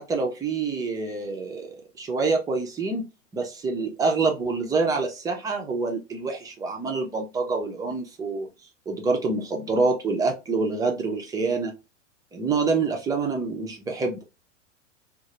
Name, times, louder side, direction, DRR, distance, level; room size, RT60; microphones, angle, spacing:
voice 1, 0.0-3.1 3.3-8.5 8.9-11.7 12.3-14.2, right 4 dB, 10° right, 0.3 m, -26 dB
2.2 x 2.0 x 2.8 m
hypercardioid pair, 105°, 38 cm